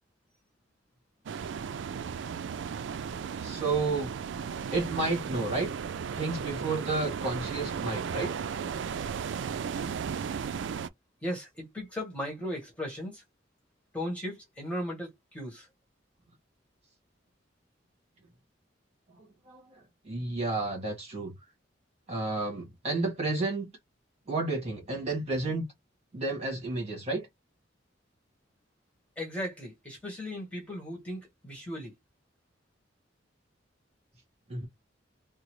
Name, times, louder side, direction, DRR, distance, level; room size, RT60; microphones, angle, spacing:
sound 1, 1.3-10.9, right 6 dB, 70° right, 0.3 m, -35 dB
voice 1, 3.4-4.1 4.7-5.7 6.1-8.3 19.2-21.3 22.1-23.7 24.3-25.7 26.1-27.3 34.5-34.7, right 3 dB, 35° right, 1.9 m, -31 dB
voice 2, 11.2-13.2 13.9-15.7 29.2-31.9, equal, 5° left, 1.5 m, -37 dB
3.7 x 2.0 x 3.1 m
head